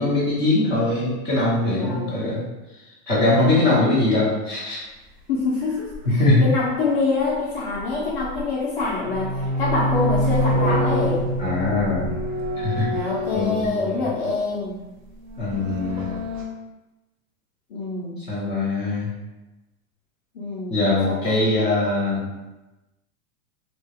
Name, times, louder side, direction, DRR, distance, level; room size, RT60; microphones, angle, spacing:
voice 1, 0.0-2.5 3.1-4.8 6.2-6.4 11.4-12.2 12.6-14.1 15.4-16.1 18.3-19.1 20.7-22.2, left 2 dB, 10° right, -11 dB, 0.8 m, -22 dB
voice 2, 1.8-2.4 3.3-3.8 5.3-9.3 9.6-11.2 12.5-14.8 17.7-18.2 20.3-21.5, left 3 dB, 40° left, -6 dB, 0.6 m, -26 dB
sound 1, 5.9-6.0 7.7-8.5 8.8-14.3 15.1-16.4, equal, 35° right, 0.4 m, -26 dB
3.7 x 2.2 x 3.4 m, 1.1 s
supercardioid pair, 175°, 44 cm